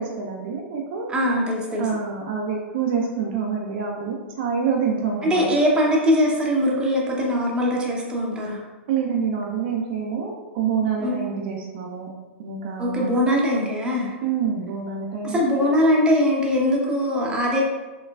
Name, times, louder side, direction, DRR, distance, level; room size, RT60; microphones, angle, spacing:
voice 1, 0.0-1.1 1.8-5.5 8.9-12.1 12.4-13.2 14.2-15.8, right 6 dB, 55° right, 0 dB, 0.6 m, -27 dB
voice 2, 1.1-1.9 5.2-8.6 11.0-11.2 12.8-14.2 15.2-17.6, equal, 15° right, -3 dB, 0.9 m, -21 dB
4.3 x 3.1 x 2.4 m, 1.2 s
hypercardioid pair, 105°, 7 cm